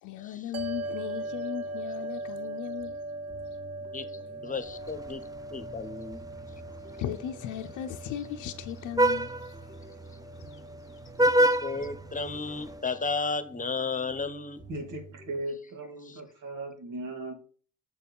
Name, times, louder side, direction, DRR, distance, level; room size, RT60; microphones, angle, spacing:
voice 1, 0.0-3.0 7.0-9.6 10.5-11.4, left 11 dB, 85° left, 0.6 m, -37 dB
sound 1, 0.5-15.4, right 1 dB, 25° right, 1.8 m, -50 dB
sound 2, 0.5-13.0, right 2 dB, 55° right, 1.0 m, -41 dB
voice 2, 3.9-5.2 5.5-6.2 11.2-14.6 16.0-16.2, left 4 dB, 25° left, 1.0 m, -34 dB
Vehicle horn car horn honking, 4.7-12.8, right 1 dB, 10° right, 0.5 m, -30 dB
voice 3, 14.7-17.3, right 2 dB, 85° right, 2.6 m, -37 dB
6.9 x 4.6 x 5.3 m
cardioid pair, 90°, 30 cm